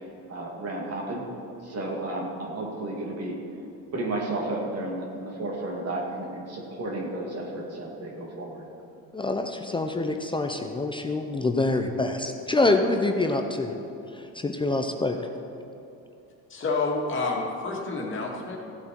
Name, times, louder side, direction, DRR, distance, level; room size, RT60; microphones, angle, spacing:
voice 1, 0.3-1.2 1.6-3.3 3.9-8.6, right 2 dB, 45° right, -1 dB, 2.5 m, -32 dB
voice 2, 9.1-13.7 14.1-15.2, left 2 dB, 15° left, 4 dB, 0.6 m, -26 dB
voice 3, 16.5-18.6, left 3 dB, 35° left, -1 dB, 2.2 m, -28 dB
15.5 x 8.0 x 4.5 m, 2.8 s
cardioid pair, 125°, 36 cm